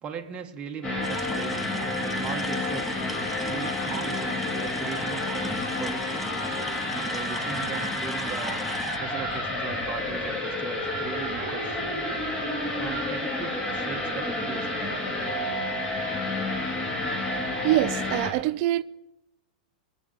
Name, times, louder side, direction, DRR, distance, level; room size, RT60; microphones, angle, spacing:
voice 1, 0.0-3.0 3.5-6.2 6.9-8.6 9.0-11.8 12.8-14.8, right 7 dB, 25° right, 1.2 m, -38 dB
sound 1, 0.8-18.3, left 2 dB, 20° left, 2.9 m, -30 dB
sound 2, 1.0-9.0, left 1 dB, ahead, 0.7 m, -39 dB
voice 2, 17.6-18.8, right 16 dB, 50° right, 0.5 m, -25 dB
21.0 x 7.5 x 5.3 m
hypercardioid pair, 110°, 5 cm